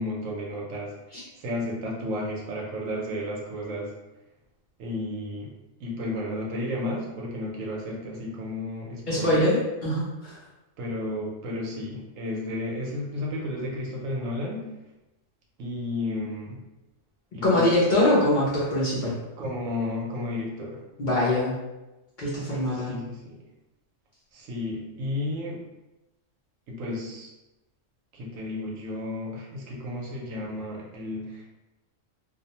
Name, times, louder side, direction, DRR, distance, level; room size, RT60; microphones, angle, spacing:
voice 1, 0.0-0.9 1.4-3.9 4.8-5.5 5.8-9.4 10.8-14.7 15.6-16.6 17.3-17.7 19.4-20.8 22.7-23.4 24.3-25.6 26.7-27.3 28.1-31.5, left 1 dB, 80° right, -2 dB, 1.0 m, -32 dB
voice 2, 9.1-10.3 17.4-19.1 21.0-21.5 22.2-23.0, left 1 dB, 50° left, -7 dB, 0.6 m, -23 dB
2.5 x 2.1 x 2.8 m, 1.0 s
omnidirectional pair, 1.4 m